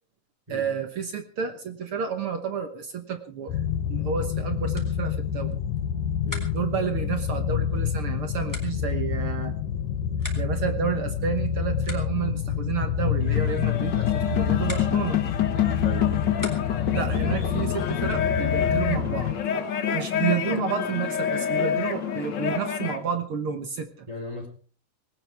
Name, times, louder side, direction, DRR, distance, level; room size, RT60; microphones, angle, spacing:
voice 1, 0.5-3.5 3.9-5.6 6.5-9.5 10.4-15.2 16.9-19.3 19.9-24.1, right 7 dB, 55° right, 7 dB, 1.6 m, -30 dB
sound 1, 3.5-19.3, left 8 dB, 80° left, 2.6 m, -28 dB
sound 2, 4.7-17.0, left 2 dB, 5° left, 3.8 m, -46 dB
sound 3, 13.2-23.0, left 9 dB, 55° left, 1.3 m, -27 dB
voice 2, 15.8-16.3 24.1-24.5, left 1 dB, 10° right, 4 dB, 3.9 m, -37 dB
20.0 x 18.5 x 3.5 m, 0.41 s
omnidirectional pair, 3.7 m